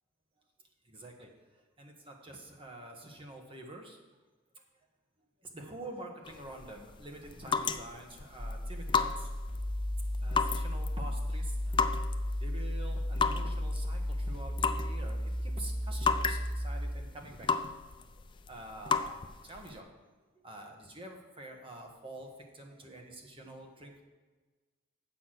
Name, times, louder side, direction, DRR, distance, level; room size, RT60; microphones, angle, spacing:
voice 1, 0.8-1.3 1.8-4.0 5.4-9.3 10.2-11.9 12.4-17.5 18.1-19.9 20.4-24.0, right 1 dB, 25° right, 2 dB, 1.3 m, -47 dB
sound 1, 6.2-19.8, left 5 dB, 25° left, 0.3 m, -35 dB
sound 2, 8.4-16.9, left 1 dB, ahead, 2.6 m, -34 dB
8.1 x 6.0 x 6.4 m, 1.3 s
head